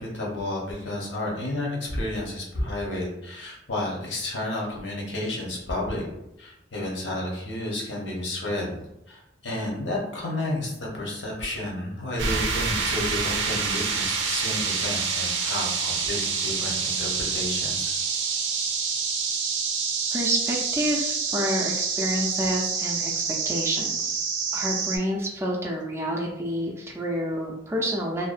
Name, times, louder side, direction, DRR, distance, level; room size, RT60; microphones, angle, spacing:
voice 1, 0.0-6.1 6.4-8.8 9.1-17.9, left 1 dB, 80° left, -2 dB, 0.8 m, -31 dB
sound 1, 12.2-25.0, right 5 dB, 80° right, 0.4 m, -27 dB
voice 2, 20.1-23.1 23.5-24.2 24.5-28.3, equal, 15° right, -1 dB, 0.3 m, -28 dB
2.6 x 2.1 x 2.4 m, 0.84 s
head